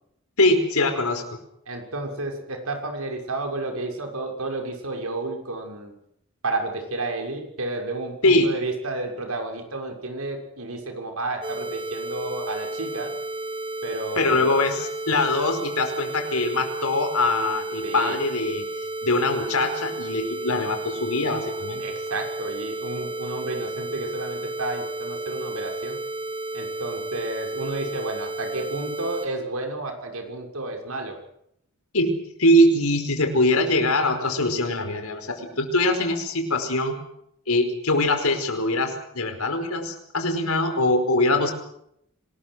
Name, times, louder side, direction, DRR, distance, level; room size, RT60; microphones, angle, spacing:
voice 1, 0.4-1.4 8.2-8.5 14.1-18.7 19.0-21.8 31.9-32.1 32.4-37.0 37.5-41.5, left 1 dB, 90° left, 7 dB, 5.0 m, -22 dB
voice 2, 1.7-5.9 6.4-13.1 13.8-14.5 17.8-18.2 21.8-26.0 26.5-31.2, right 2 dB, 85° right, 3 dB, 6.5 m, -31 dB
sound 1, 11.4-29.3, right 2 dB, 25° right, 3.9 m, -32 dB
26.0 x 20.5 x 6.6 m, 0.73 s
head